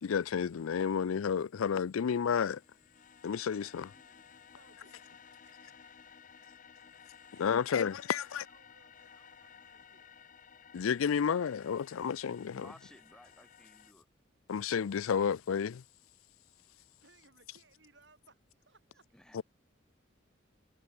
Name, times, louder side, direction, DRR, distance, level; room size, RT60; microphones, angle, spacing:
voice 1, 0.0-2.6 3.2-3.9 7.4-8.4 10.7-12.7 14.5-15.8 19.3-19.4, left 7 dB, 90° left, 0.4 m, -31 dB
sound 1, 2.1-13.9, left 7 dB, 40° left, 0.7 m, -57 dB
voice 2, 3.9-4.3 12.5-14.1 19.1-19.4, left 1 dB, 5° left, 1.1 m, -57 dB
voice 3, 4.5-6.8 7.3-10.1 17.0-19.1, right 3 dB, 60° right, 5.9 m, -65 dB
head